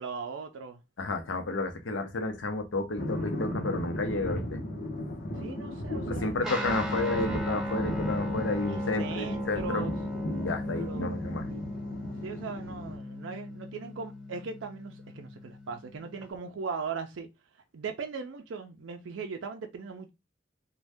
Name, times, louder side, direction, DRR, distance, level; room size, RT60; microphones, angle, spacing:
voice 1, 0.0-0.8 5.4-6.4 8.7-10.0 10.8-11.1 11.5-11.7 12.2-17.3 17.7-20.1, right 5 dB, 90° right, 0.4 m, -39 dB
voice 2, 1.0-4.6 6.1-9.9 10.3-11.5, left 2 dB, 85° left, 0.6 m, -31 dB
sound 1, 3.0-13.0, left 1 dB, 50° left, 0.7 m, -36 dB
Guitar, 6.4-16.3, left 1 dB, ahead, 0.6 m, -36 dB
2.6 x 2.2 x 3.3 m
head